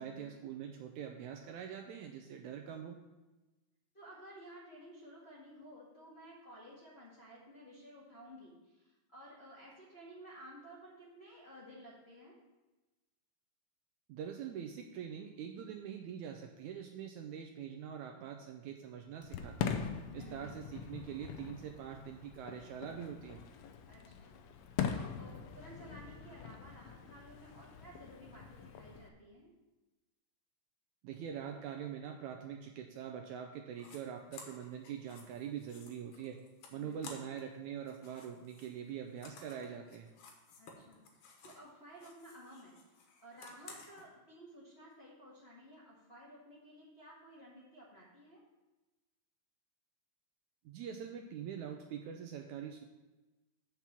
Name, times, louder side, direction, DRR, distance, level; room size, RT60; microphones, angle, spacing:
voice 1, 0.0-3.0 14.1-19.8 20.1-23.4 31.0-36.4 36.7-40.1 50.7-52.8, right 8 dB, 80° right, 3 dB, 1.8 m, -44 dB
voice 2, 3.9-12.3 20.1-20.4 23.9-24.4 24.9-29.5 36.7-37.1 40.6-48.4, equal, 30° left, -6 dB, 1.3 m, -54 dB
Fireworks, 19.2-29.1, left 7 dB, 85° left, 1.5 m, -42 dB
sound 1, 33.8-34.0 34.3-37.6 37.8-41.7 42.0-44.1, left 4 dB, 70° left, 2.5 m, -55 dB
8.2 x 5.9 x 5.9 m, 1.1 s
omnidirectional pair, 3.8 m